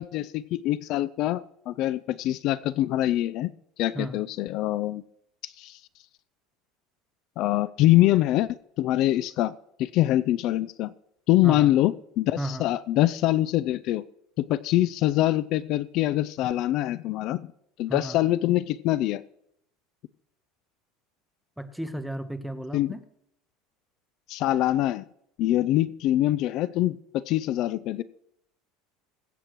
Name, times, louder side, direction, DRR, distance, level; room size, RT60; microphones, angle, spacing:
voice 1, 0.0-3.5 3.8-5.0 5.4-5.8 7.4-8.5 8.8-9.5 9.8-10.9 11.3-14.0 14.4-17.5 17.8-19.2 22.7-22.9 24.3-25.0 25.4-28.0, left 14 dB, 55° left, 17 dB, 0.4 m, -24 dB
voice 2, 12.4-12.7 17.9-18.2 21.6-23.0, right 1 dB, ahead, 8 dB, 1.0 m, -34 dB
21.5 x 8.6 x 3.0 m, 0.77 s
supercardioid pair, 140°, 0 cm